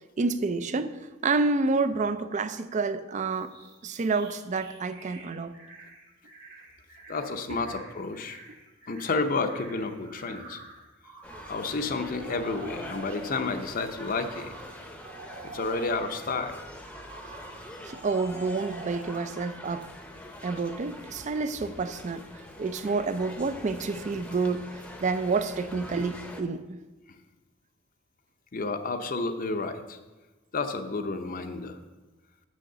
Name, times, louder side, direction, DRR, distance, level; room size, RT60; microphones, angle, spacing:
voice 1, 0.2-3.5 3.8-5.6 17.8-19.9 20.4-22.3 22.6-26.8, right 4 dB, 40° right, 0.4 m, -29 dB
sound 1, 3.3-13.5 13.9-16.4 16.8-19.4, right 3 dB, 55° right, 1.7 m, -47 dB
voice 2, 7.1-8.4 8.9-10.6 11.5-14.5 15.5-16.5 28.5-30.0 30.5-31.8, left 3 dB, 45° left, 0.6 m, -31 dB
sound 2, 11.2-26.4, left 1 dB, 5° left, 0.7 m, -44 dB
6.4 x 6.2 x 6.7 m
head